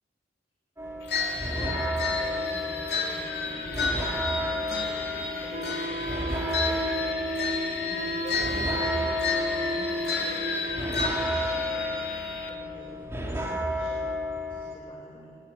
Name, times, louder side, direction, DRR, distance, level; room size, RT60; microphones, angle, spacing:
sound 1, 0.8-14.8, left 1 dB, 15° right, 2.8 m, -32 dB
sound 2, 1.1-12.5, left 4 dB, 65° left, 3.2 m, -32 dB
voice 1, 1.1-6.8 7.8-12.1 12.5-14.1 14.4-15.4, equal, 30° left, -4 dB, 4.9 m, -45 dB
Wind instrument woodwind instrument, 5.5-11.4, right 2 dB, 50° right, 1.9 m, -35 dB
23.0 x 19.5 x 8.9 m, 2.7 s
head